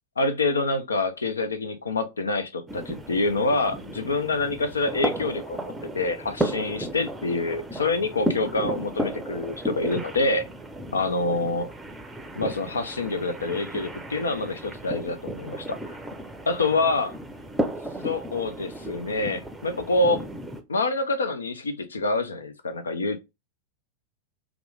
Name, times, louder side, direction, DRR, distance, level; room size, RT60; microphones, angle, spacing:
voice 1, 0.2-10.4 10.9-11.7 12.4-15.8 16.5-17.1 18.0-20.2 20.7-23.2, left 2 dB, 75° left, 0.5 m, -26 dB
sound 1, 2.7-20.6, right 1 dB, 5° right, 0.6 m, -34 dB
3.0 x 2.4 x 3.4 m
figure-of-eight pair, 90°, 0 cm